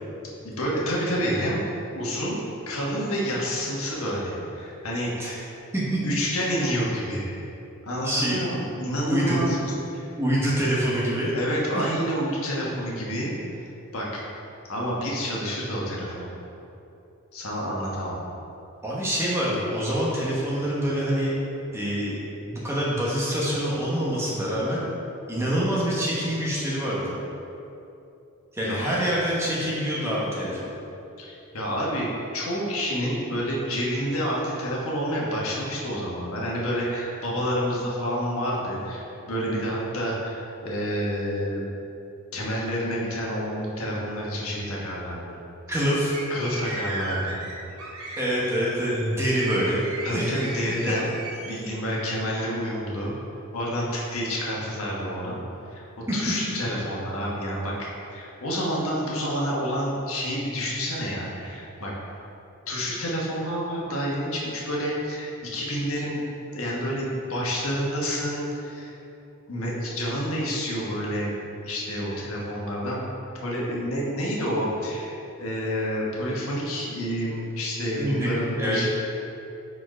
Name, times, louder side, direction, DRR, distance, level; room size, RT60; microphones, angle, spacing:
voice 1, 0.4-1.6 1.9-2.4 2.7-5.3 6.0-7.3 7.9-9.6 9.9-10.1 11.3-13.3 13.9-14.2 14.7-16.3 17.3-18.2 28.6-28.8 31.2-41.7 42.3-45.4 46.3-47.4 48.1-48.2 50.0-51.1 51.4-53.1 53.5-55.4 55.7-55.8 56.1-61.9 62.7-66.2 66.5-68.9 69.5-71.3 71.6-73.0 73.4-78.9, equal, 75° left, -4 dB, 1.3 m, -29 dB
voice 2, 8.0-8.4 9.1-9.4 10.2-11.3 11.7-11.8 18.8-21.3 21.7-22.2 22.5-24.8 25.3-27.1 28.5-30.7 45.7-46.2 48.2-49.8 50.1-50.4 56.1-56.2 78.0-78.3 78.6-78.9, equal, 10° right, -6 dB, 1.0 m, -25 dB
sound 1, 46.1-51.7, right 2 dB, 75° right, 1.2 m, -37 dB
4.8 x 4.5 x 4.8 m, 2.8 s
head